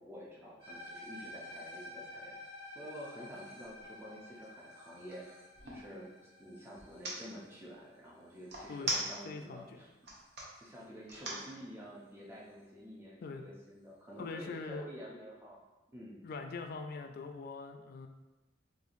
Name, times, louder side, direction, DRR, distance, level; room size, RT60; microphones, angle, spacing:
voice 1, 0.0-2.3 2.7-5.2 5.6-6.1 6.4-9.9 10.6-15.6 15.9-16.2, equal, 10° right, -5 dB, 0.6 m, -49 dB
sound 1, 0.6-9.0, left 1 dB, 75° right, 1.3 m, -51 dB
sound 2, 3.6-3.8 4.3-5.9 6.8-7.2 8.5-9.5 9.9-10.5 11.1-11.5, right 1 dB, 55° right, 0.8 m, -38 dB
voice 2, 9.2-9.8 13.2-13.4 14.2-14.9 16.2-18.1, left 4 dB, 50° left, 5 dB, 0.3 m, -43 dB
4.4 x 2.5 x 2.6 m, 1.1 s
head